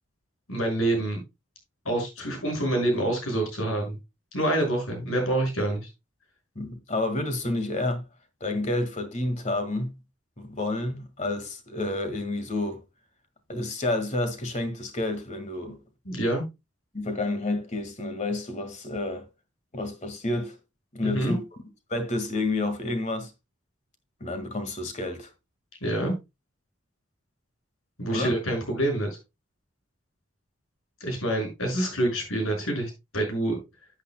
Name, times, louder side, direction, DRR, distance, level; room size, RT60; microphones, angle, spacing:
voice 1, 0.5-1.2 1.8-4.0 4.3-5.9 15.6-15.7 16.1-16.4 21.0-21.3 25.8-26.1 28.0-29.2 31.0-33.6, right 1 dB, 75° left, 6.1 m, -27 dB
voice 2, 6.6-8.0 8.4-9.9 10.4-12.8 13.5-15.8 16.9-19.3 19.7-20.6 20.9-21.4 21.9-23.3 24.2-25.3 28.1-28.4, left 2 dB, 35° left, 1.8 m, -29 dB
12.5 x 8.7 x 2.2 m
head